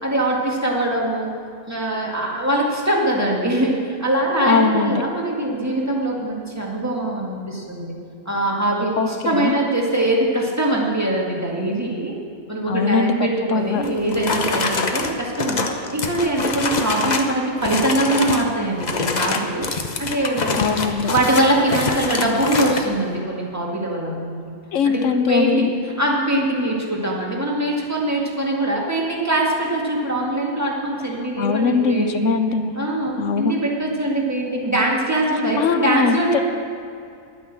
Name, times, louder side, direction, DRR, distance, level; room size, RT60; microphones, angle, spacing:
voice 1, 0.0-1.3 1.7-3.7 4.0-7.9 8.3-12.1 12.5-19.7 20.0-20.5 21.0-24.4 24.8-32.3 32.8-36.4, right 1 dB, 10° right, -3 dB, 1.9 m, -22 dB
voice 2, 4.5-5.0 9.0-9.5 12.7-13.1 13.5-13.8 20.6-21.1 24.7-25.7 31.4-32.7 33.2-33.5 35.6-36.4, left 5 dB, 65° left, 9 dB, 0.9 m, -21 dB
sound 1, 13.8-17.3 17.6-18.5 18.8-22.9, left 4 dB, 35° left, 0.8 m, -25 dB
11.0 x 9.4 x 7.4 m, 2.5 s
omnidirectional pair, 1.5 m